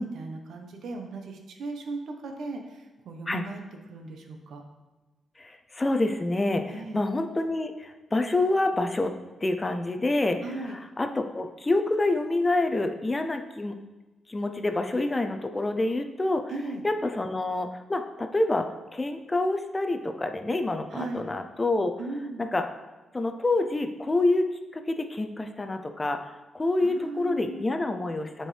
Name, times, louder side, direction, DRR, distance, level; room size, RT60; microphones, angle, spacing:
voice 1, 0.0-3.6 3.9-4.6 6.7-7.0 10.4-10.8 16.5-16.8 20.9-21.3 22.0-22.4 26.8-27.7, right 3 dB, 75° right, 4 dB, 0.8 m, -37 dB
voice 2, 5.4-9.1 9.4-13.7 14.3-16.5 16.8-21.9 22.4-22.7 23.1-28.5, left 2 dB, 20° left, 6 dB, 0.4 m, -27 dB
9.0 x 4.5 x 3.3 m, 1.1 s
cardioid pair, 125°, 0 cm